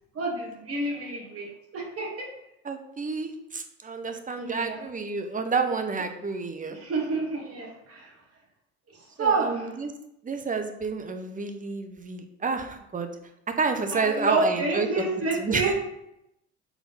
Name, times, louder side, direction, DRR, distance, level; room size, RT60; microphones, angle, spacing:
voice 1, 0.1-2.3 4.3-4.9 6.7-8.1 8.9-9.7 13.9-15.7, right 3 dB, 45° right, -1 dB, 2.1 m, -29 dB
voice 2, 2.6-6.8 9.2-9.9 10.2-13.1 13.6-14.9 15.4-15.7, right 4 dB, 25° right, 7 dB, 0.9 m, -29 dB
4.8 x 3.7 x 5.5 m, 0.82 s
hypercardioid pair, 65°, 33 cm